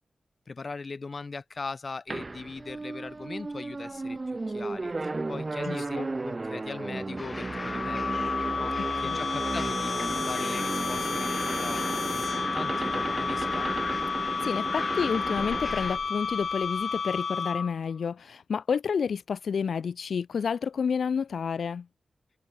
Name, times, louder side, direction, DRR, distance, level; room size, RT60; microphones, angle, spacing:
voice 1, 0.5-8.3 8.5-13.7, left 4 dB, 40° left, 5.2 m, -40 dB
sound 1, 2.1-16.7, right 3 dB, 25° right, 3.1 m, -34 dB
voice 2, 5.6-6.1 8.8-9.2 14.4-21.9, left 6 dB, 80° left, 3.3 m, -30 dB
sound 2, 7.2-16.0, left 2 dB, 25° left, 2.6 m, -39 dB
sound 3, 7.5-17.9, left 5 dB, 60° left, 4.7 m, -31 dB
wide cardioid pair, 180°, 0 cm